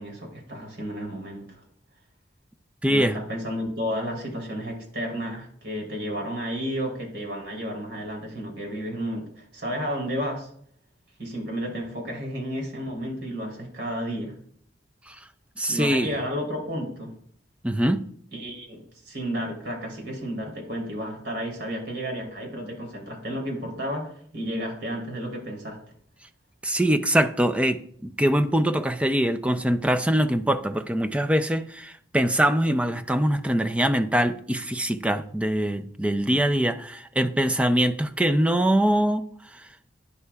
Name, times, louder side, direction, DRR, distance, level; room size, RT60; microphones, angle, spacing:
voice 1, 0.0-1.6 2.9-10.5 11.2-14.4 15.7-17.1 18.3-25.8, equal, 70° right, 0 dB, 3.4 m, -32 dB
voice 2, 2.8-3.2 15.1-15.2 15.6-16.1 17.6-18.0 26.6-39.7, right 1 dB, 5° right, 9 dB, 0.4 m, -23 dB
11.0 x 9.9 x 2.4 m, 0.63 s
head